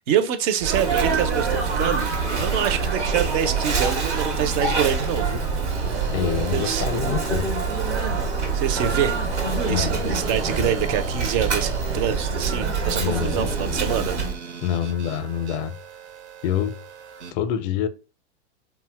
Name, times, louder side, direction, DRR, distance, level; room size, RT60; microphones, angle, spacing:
voice 1, 0.1-5.4 6.5-6.9 8.5-9.2 9.6-14.2, right 9 dB, 35° right, 0.4 m, -26 dB
Sneeze, 0.6-14.4, right 4 dB, 90° right, 1.0 m, -25 dB
sound 1, 5.7-17.3, right 6 dB, 70° right, 0.7 m, -40 dB
voice 2, 6.1-7.6 9.7-10.0 13.0-13.4 14.6-15.7 16.4-16.8 17.3-17.9, left 9 dB, 45° left, 0.5 m, -26 dB
2.7 x 2.2 x 3.3 m
hypercardioid pair, 105°, 34 cm